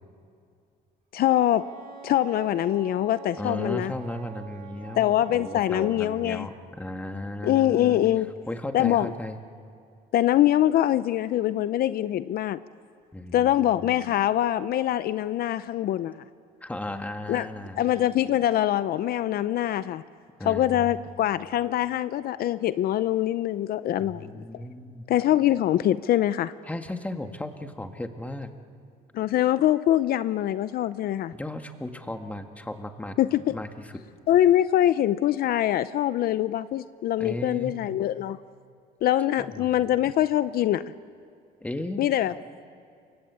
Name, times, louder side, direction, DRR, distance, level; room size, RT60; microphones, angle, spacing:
voice 1, 1.1-1.7 2.0-3.9 5.0-6.5 7.4-8.3 8.7-9.1 10.1-12.6 13.3-16.2 17.3-17.5 17.8-20.0 20.4-24.4 25.1-26.5 29.1-31.3 33.2-33.6 34.3-38.4 39.0-40.9 42.0-42.3, left 12 dB, 65° left, 14 dB, 0.7 m, -24 dB
Wind instrument woodwind instrument, 1.5-6.1, right 8 dB, 60° right, 3.4 m, -45 dB
voice 2, 3.4-8.0 8.5-9.4 13.1-13.6 16.6-17.8 20.4-20.9 24.0-25.1 26.7-28.5 31.3-33.2 33.5-34.0 37.2-37.8 39.4-39.8 41.6-42.0, left 1 dB, 10° left, 6 dB, 1.9 m, -35 dB
29.0 x 24.0 x 8.4 m, 2.3 s
cardioid pair, 110°, 17 cm